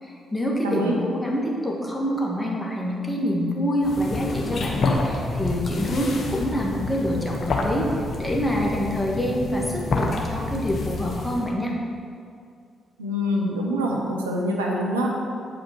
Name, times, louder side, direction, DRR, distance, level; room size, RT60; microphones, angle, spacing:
voice 1, 0.0-7.9 8.2-11.8, equal, 5° left, -2 dB, 1.8 m, -26 dB
voice 2, 0.6-1.0 13.0-15.2, equal, 90° right, -1 dB, 0.8 m, -25 dB
sound 1, 3.8-11.5, left 3 dB, 50° left, 1.0 m, -28 dB
8.7 x 5.2 x 4.6 m, 2.3 s
hypercardioid pair, 40°, 0 cm